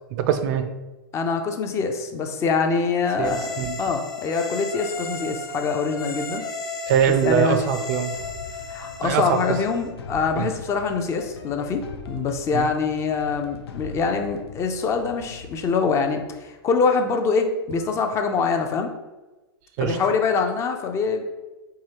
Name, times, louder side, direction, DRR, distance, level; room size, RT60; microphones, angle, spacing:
voice 1, 0.1-0.7 3.2-3.8 6.9-8.2 9.0-9.4 10.4-10.5 12.5-12.7 19.8-20.0, right 8 dB, 45° right, 9 dB, 0.4 m, -22 dB
voice 2, 1.1-3.5 3.8-6.4 7.2-7.6 8.7-18.9 19.8-21.2, left 5 dB, 20° left, 5 dB, 0.4 m, -24 dB
sound 1, 3.2-9.9, left 2 dB, 55° left, 1.0 m, -34 dB
sound 2, 8.1-17.0, left 4 dB, 85° left, 0.6 m, -42 dB
4.7 x 2.8 x 2.9 m, 1.1 s
hypercardioid pair, 135°, 13 cm